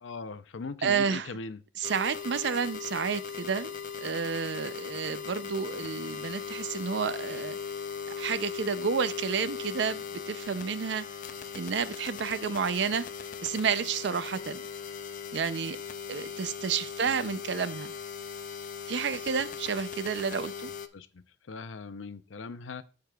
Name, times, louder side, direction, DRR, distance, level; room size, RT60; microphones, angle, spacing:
voice 1, 0.0-1.6 20.9-22.8, left 4 dB, 90° left, 0.6 m, -40 dB
voice 2, 0.8-1.3 1.8-3.7 4.0-7.6 8.2-11.1 11.5-13.0 13.4-14.6 15.3-15.8 16.1-17.9 18.9-20.7, right 6 dB, 65° right, 0.4 m, -30 dB
sound 1, 1.8-20.9, left 6 dB, 45° left, 0.5 m, -39 dB
13.5 x 4.7 x 2.3 m
head